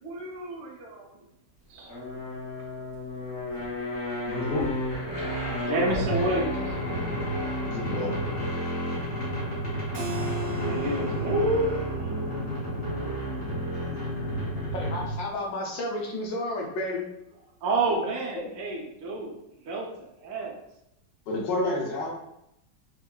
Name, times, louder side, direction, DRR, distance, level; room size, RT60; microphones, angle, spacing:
voice 1, 0.0-1.1 1.7-1.9 5.1-6.8 9.6-12.1 17.6-19.4 19.6-20.6, right 2 dB, 60° right, -3 dB, 0.8 m, -30 dB
sound 1, 1.9-15.3, equal, 40° left, 1.2 m, -31 dB
voice 2, 4.3-4.7 7.7-8.2 21.3-22.1, left 2 dB, 55° left, -3 dB, 0.7 m, -29 dB
Keyboard (musical), 9.9-15.5, equal, 75° right, 1.2 m, -40 dB
voice 3, 14.7-17.1, left 1 dB, 85° left, -1 dB, 1.4 m, -32 dB
3.5 x 2.2 x 2.2 m, 0.82 s
omnidirectional pair, 2.0 m